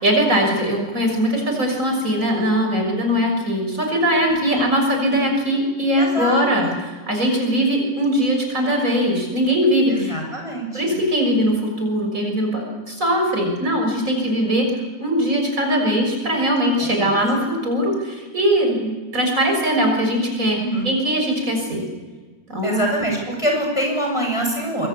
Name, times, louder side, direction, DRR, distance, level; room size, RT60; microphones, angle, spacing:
voice 1, 0.0-10.2 10.7-14.7 15.0-21.8 22.5-22.8, equal, 45° right, 2 dB, 6.8 m, -20 dB
voice 2, 4.3-4.6 6.0-6.8 9.9-11.0 16.8-17.1 20.6-20.9 22.6-24.9, right 1 dB, 15° left, 1 dB, 7.1 m, -25 dB
26.0 x 24.0 x 8.5 m, 1.3 s
omnidirectional pair, 2.0 m